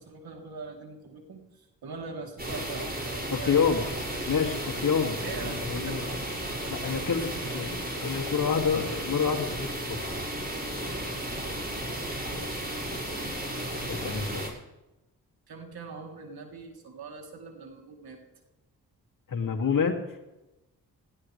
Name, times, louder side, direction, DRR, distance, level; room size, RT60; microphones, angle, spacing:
voice 1, 0.0-4.4 5.1-6.2 6.5-7.9 8.8-9.0 10.9-11.3 15.5-18.2, right 4 dB, 75° right, 2 dB, 3.4 m, -43 dB
sound 1, 2.4-14.5, right 1 dB, 25° right, 6.0 m, -34 dB
voice 2, 3.3-3.9 4.3-5.2 5.4-6.0 6.7-7.3 7.5-7.7 8.0-10.0 12.3-12.5 13.9-14.5 19.3-20.0, left 6 dB, 60° left, 2 dB, 2.6 m, -27 dB
18.5 x 15.5 x 3.4 m, 0.99 s
supercardioid pair, 45°, 37 cm